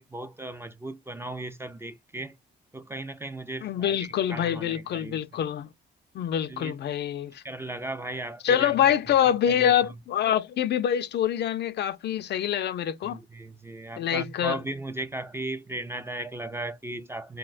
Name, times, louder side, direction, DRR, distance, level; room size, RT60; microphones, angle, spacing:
voice 1, 0.0-2.3 2.7-5.2 6.5-6.8 7.4-8.7 13.0-17.4, right 2 dB, 10° right, 0.4 m, -36 dB
voice 2, 3.6-5.7 6.1-7.4 8.4-13.2 14.0-14.6, left 9 dB, 60° left, 0.4 m, -25 dB
3.7 x 2.1 x 2.4 m
cardioid pair, 90°, 20 cm